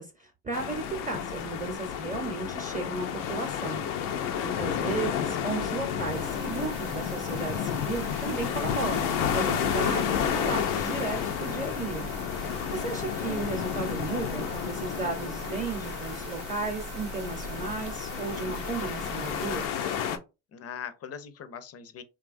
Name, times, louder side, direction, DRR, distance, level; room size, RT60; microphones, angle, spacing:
voice 1, 0.0-3.8 4.1-12.1 12.3-19.8, right 3 dB, 20° right, 0.7 m, -35 dB
sound 1, 0.5-20.2, left 8 dB, 90° left, 0.5 m, -31 dB
voice 2, 4.3-4.9 20.5-22.0, left 7 dB, 40° left, 0.5 m, -42 dB
sound 2, 5.9-19.7, right 4 dB, 90° right, 0.8 m, -42 dB
2.9 x 2.3 x 2.5 m
supercardioid pair, 75°, 40 cm